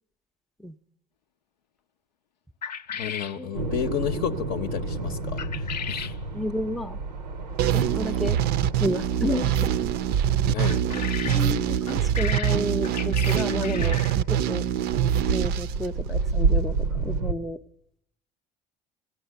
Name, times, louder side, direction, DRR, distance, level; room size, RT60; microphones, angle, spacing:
sound 1, 2.6-3.4 5.4-6.2 10.6-11.5 11.9-14.2, left 7 dB, 85° left, 0.5 m, -35 dB
voice 1, 2.9-6.1 10.5-11.4, left 9 dB, 50° left, 0.7 m, -32 dB
sound 2, 3.5-12.4 14.6-17.3, right 3 dB, 85° right, 0.7 m, -31 dB
voice 2, 6.3-7.0 7.7-8.4 8.8-9.7 10.9-14.0 14.3-14.6 15.3-17.6, left 1 dB, ahead, 0.5 m, -31 dB
sound 3, 7.6-16.4, right 10 dB, 50° right, 0.5 m, -24 dB
17.5 x 9.5 x 6.8 m
figure-of-eight pair, 60°, 21 cm